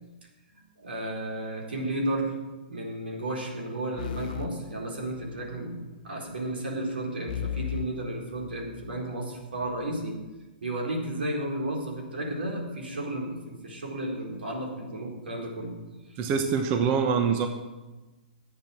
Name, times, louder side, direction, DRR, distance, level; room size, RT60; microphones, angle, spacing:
voice 1, 0.8-2.3 2.7-10.2 10.6-15.7 16.1-16.2, right 1 dB, 85° right, -1 dB, 4.1 m, -33 dB
sound 1, 4.0-5.6 7.3-9.0, left 11 dB, 55° left, 0.8 m, -37 dB
voice 2, 16.2-17.5, right 6 dB, 35° right, 5 dB, 1.1 m, -24 dB
11.0 x 8.3 x 7.6 m, 1.1 s
hypercardioid pair, 130°, 5 cm